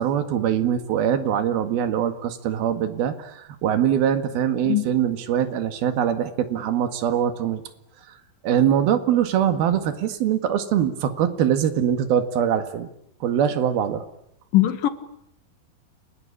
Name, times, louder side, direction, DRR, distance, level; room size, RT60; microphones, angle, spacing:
voice 1, 0.0-7.6 8.1-8.2 8.4-12.9 13.2-14.0, right 9 dB, 80° right, 3.8 m, -23 dB
voice 2, 14.5-14.9, left 14 dB, 65° left, 3.3 m, -19 dB
30.0 x 22.0 x 8.8 m
omnidirectional pair, 4.3 m